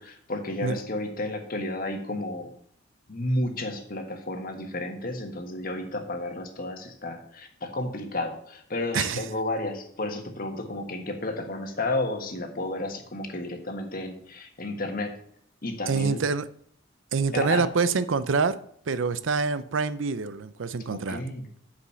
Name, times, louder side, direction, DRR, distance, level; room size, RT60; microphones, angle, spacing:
voice 1, 0.0-2.5 3.1-15.2 15.6-16.2 17.3-17.6 20.9-21.5, left 2 dB, 50° left, 1.5 m, -32 dB
voice 2, 15.9-16.5 17.1-18.6 18.9-21.2, right 4 dB, 85° right, 0.5 m, -26 dB
8.2 x 5.1 x 7.0 m
head